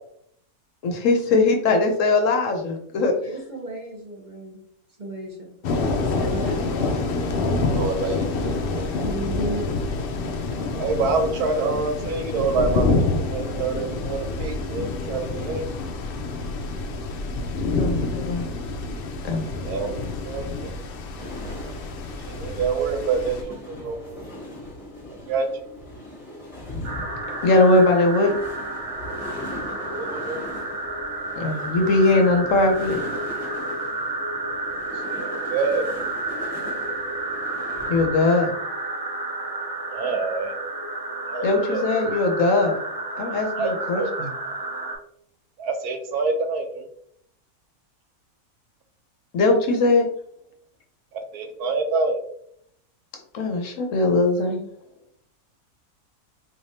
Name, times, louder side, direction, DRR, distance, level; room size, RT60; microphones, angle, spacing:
voice 1, 0.8-3.1 17.7-18.5 19.2-19.4 27.4-28.4 31.4-33.0 37.9-38.5 41.4-42.8 43.2-44.3 49.3-50.1 53.3-54.6, left 2 dB, 65° left, 3 dB, 1.0 m, -20 dB
voice 2, 3.2-4.6 5.0-5.5 6.2-6.6 9.0-9.6 19.8-19.9, right 1 dB, 35° right, -1 dB, 1.0 m, -33 dB
sound 1, 5.6-23.4, left 3 dB, 90° left, 0.5 m, -27 dB
voice 3, 7.7-8.9 10.8-15.7 19.6-19.9 20.2-20.8 22.2-24.3 25.3-25.5 30.0-30.4 35.1-35.9 39.9-40.5 41.3-41.9 43.6-44.1 45.6-46.8 51.3-52.2, right 4 dB, 80° right, 6 dB, 1.2 m, -27 dB
sound 2, 21.2-38.1, left 1 dB, 25° left, 1.2 m, -39 dB
sound 3, 26.8-44.9, right 2 dB, 60° right, 2.1 m, -31 dB
4.2 x 3.3 x 2.7 m, 0.70 s
omnidirectional pair, 1.6 m